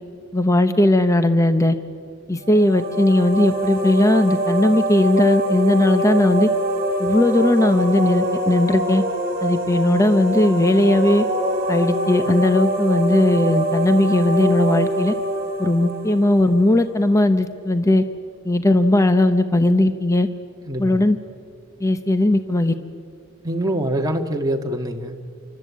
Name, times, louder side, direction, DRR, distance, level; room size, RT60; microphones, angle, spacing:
voice 1, 0.3-1.8 2.3-6.5 7.0-9.0 9.4-11.2 11.7-15.1 15.6-18.0 18.4-20.3 20.8-21.2 21.8-22.8, left 1 dB, 15° left, 8 dB, 0.8 m, -18 dB
sound 1, 2.4-17.1, right 1 dB, 45° right, 3.1 m, -24 dB
voice 2, 20.6-21.0 23.4-25.2, right 1 dB, 15° right, 2 dB, 1.7 m, -24 dB
27.5 x 24.0 x 8.4 m, 2.2 s
head